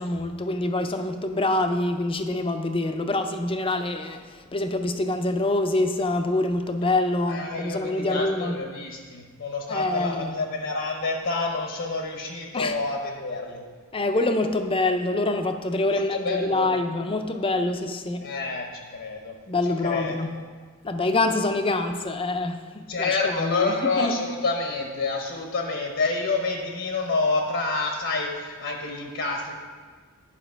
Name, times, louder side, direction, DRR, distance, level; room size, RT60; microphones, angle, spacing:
voice 1, 0.0-8.6 9.7-10.3 12.5-12.8 13.9-18.3 19.5-20.4 20.8-24.2, left 2 dB, 25° left, 7 dB, 0.5 m, -26 dB
voice 2, 7.3-13.6 15.9-16.7 18.2-19.3 19.8-20.3 22.9-29.5, left 3 dB, 60° left, 2 dB, 0.9 m, -28 dB
10.0 x 6.0 x 4.6 m, 1.5 s
head